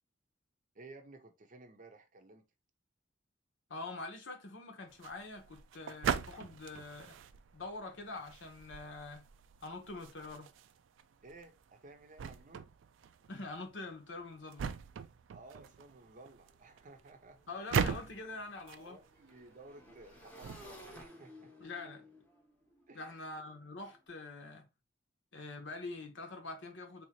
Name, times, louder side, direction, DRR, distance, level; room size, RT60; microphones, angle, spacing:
voice 1, 0.7-2.5 11.2-12.7 15.3-17.4 18.7-21.5 22.9-23.2, right 2 dB, 45° right, 0.6 m, -55 dB
voice 2, 3.7-7.2 7.5-9.3 9.6-10.5 13.3-14.7 17.5-19.0 21.6-22.1 22.9-24.7 25.3-27.0, left 3 dB, 70° left, 1.0 m, -45 dB
sound 1, 4.9-21.1, right 6 dB, 80° right, 0.3 m, -41 dB
Motorcycle / Engine, 16.5-16.6 16.8-24.0, left 1 dB, 10° left, 0.8 m, -57 dB
3.6 x 2.8 x 2.9 m
head